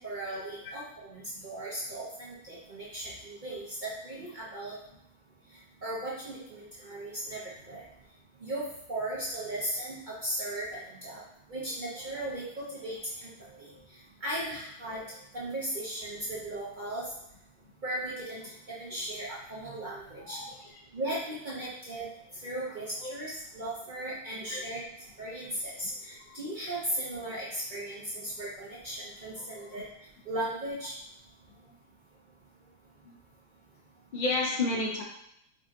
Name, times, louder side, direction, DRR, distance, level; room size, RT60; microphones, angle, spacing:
voice 1, 0.0-4.8 5.8-7.4 7.7-7.8 8.4-11.2 11.5-13.7 14.2-15.0 15.3-17.1 17.8-20.4 20.9-22.1 22.4-24.8 25.2-29.8 30.2-30.9, right 1 dB, 55° right, -7 dB, 0.5 m, -37 dB
voice 2, 20.3-20.8 23.0-23.1 24.5-24.6 26.3-26.4 29.4-29.8 33.0-33.1 34.1-35.0, left 2 dB, 80° left, -2 dB, 0.4 m, -32 dB
5.0 x 2.7 x 2.5 m, 0.76 s
omnidirectional pair, 1.9 m